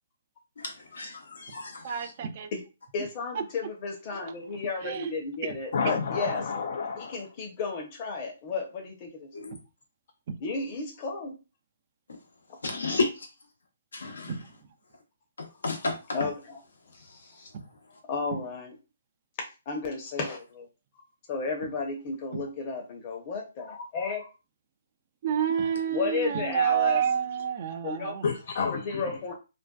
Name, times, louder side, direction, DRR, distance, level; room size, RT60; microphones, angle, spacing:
voice 1, 0.6-2.1 9.3-9.6 12.6-13.3 13.9-14.3 15.4-16.2, left 3 dB, 90° left, 0.9 m, -32 dB
voice 2, 1.8-2.5 3.3-3.4 4.1-4.3 4.8-5.1 5.4-5.6 9.5-9.6 10.3-10.4 14.3-14.5 17.5-17.7 18.3-18.4 22.3-22.4 25.2-28.3, right 8 dB, 40° right, 0.3 m, -29 dB
voice 3, 2.9-6.4 7.0-9.3 10.4-11.3 16.1-16.6 18.1-18.7 19.7-20.7 21.3-24.2 25.9-27.0 27.8-28.2 28.7-29.3, left 4 dB, 35° left, 0.8 m, -33 dB
voice 4, 5.7-7.2 16.9-17.5 28.2-29.2, left 5 dB, 55° left, 0.4 m, -31 dB
2.5 x 2.2 x 2.3 m
hypercardioid pair, 155°, 0 cm